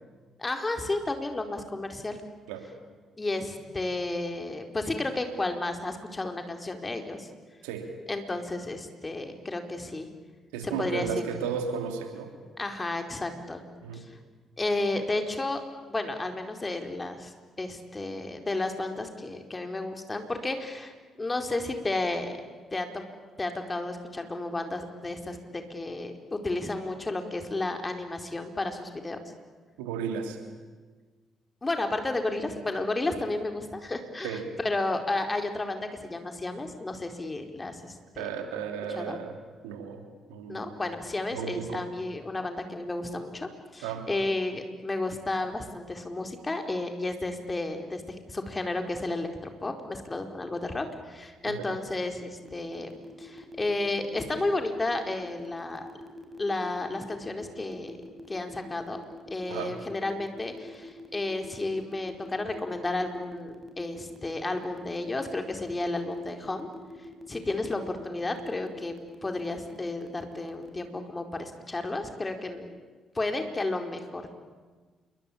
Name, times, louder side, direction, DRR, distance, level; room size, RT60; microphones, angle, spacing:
voice 1, 0.4-2.2 3.2-7.3 8.1-10.1 10.6-11.2 12.6-13.6 13.9-14.0 14.6-15.6 15.9-20.9 21.2-22.4 22.7-23.0 23.4-29.2 31.6-38.3 39.0-39.2 40.5-52.9 53.2-55.9 56.4-58.0 58.3-59.0 59.3-66.7 67.3-68.9 69.2-72.7 73.1-74.3, left 2 dB, 25° left, 5 dB, 4.5 m, -32 dB
voice 2, 10.5-12.3 13.8-14.0 29.8-30.4 34.2-34.4 38.2-39.3 39.6-40.0 40.3-40.7 41.3-41.8 43.8-44.1 51.5-51.7 59.5-59.7, right 7 dB, 80° right, 5 dB, 3.3 m, -34 dB
sound 1, 52.4-70.9, left 1 dB, 10° right, 6.6 m, -45 dB
28.0 x 23.5 x 8.8 m, 1.4 s
hypercardioid pair, 45°, 0 cm